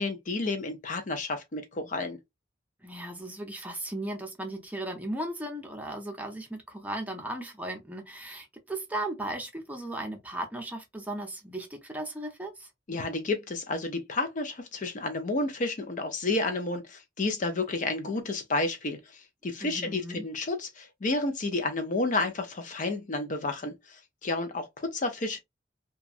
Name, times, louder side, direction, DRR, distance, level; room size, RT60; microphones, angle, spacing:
voice 1, 0.0-2.2 12.9-19.0 19.4-23.7 24.2-25.4, left 2 dB, 40° left, 0.5 m, -30 dB
voice 2, 2.8-12.7 19.6-20.3, right 1 dB, 10° right, 0.6 m, -36 dB
3.0 x 2.3 x 2.4 m
head